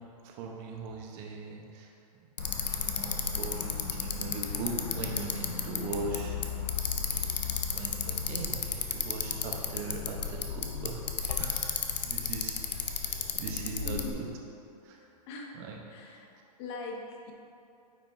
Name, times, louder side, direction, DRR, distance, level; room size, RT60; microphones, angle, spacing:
voice 1, 0.2-1.9 2.9-6.4 7.7-11.0 11.4-14.3 14.8-15.1 15.5-15.8, right 4 dB, 40° right, 0 dB, 1.0 m, -40 dB
Bicycle, 2.4-14.1, left 6 dB, 85° left, 0.7 m, -33 dB
voice 2, 13.8-14.2 15.3-15.6 15.9-16.3 16.6-17.3, left 3 dB, 40° left, 2 dB, 0.9 m, -41 dB
9.2 x 5.1 x 2.7 m, 2.6 s
hypercardioid pair, 135°, 21 cm